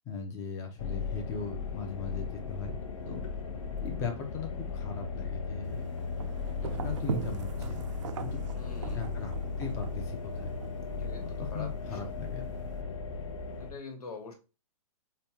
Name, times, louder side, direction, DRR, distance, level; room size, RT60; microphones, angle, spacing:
voice 1, 0.1-2.7 3.1-3.2 3.8-5.8 6.6-7.9 8.2-8.4 8.9-10.5 11.2-12.5, left 5 dB, 15° left, 3 dB, 0.6 m, -39 dB
sound 1, 0.8-13.7, left 5 dB, 60° left, 0.8 m, -36 dB
sound 2, 5.6-12.8, right 10 dB, 55° right, 0.5 m, -42 dB
voice 2, 8.5-9.1 10.9-12.1 13.6-14.3, left 4 dB, 90° left, 4 dB, 1.4 m, -45 dB
5.2 x 2.2 x 2.8 m, 0.31 s
hypercardioid pair, 150°, 19 cm